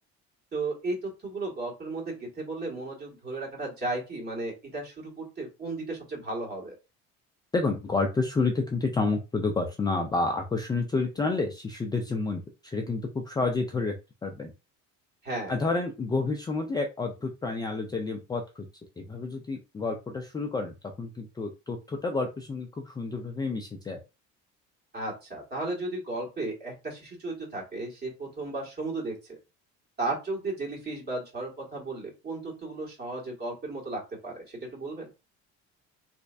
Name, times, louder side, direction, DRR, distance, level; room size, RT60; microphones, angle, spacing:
voice 1, 0.5-6.8 15.2-15.6 24.9-29.4 30.0-35.1, right 2 dB, 35° right, -2 dB, 1.8 m, -34 dB
voice 2, 7.5-14.0 14.2-14.5 15.5-18.7 19.0-24.0, left 3 dB, 15° left, 3 dB, 0.3 m, -29 dB
3.3 x 3.1 x 2.6 m, 0.28 s
cardioid pair, 135°, 30 cm